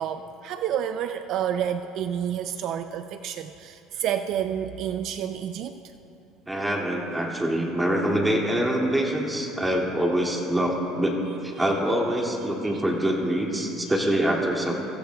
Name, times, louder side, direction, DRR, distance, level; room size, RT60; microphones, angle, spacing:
voice 1, 0.0-5.8 12.6-12.8, right 9 dB, 60° right, 9 dB, 0.4 m, -29 dB
voice 2, 6.5-11.2 11.4-14.7, right 1 dB, 10° right, -1 dB, 2.3 m, -25 dB
24.5 x 15.5 x 2.3 m, 2.9 s
supercardioid pair, 115°, 0 cm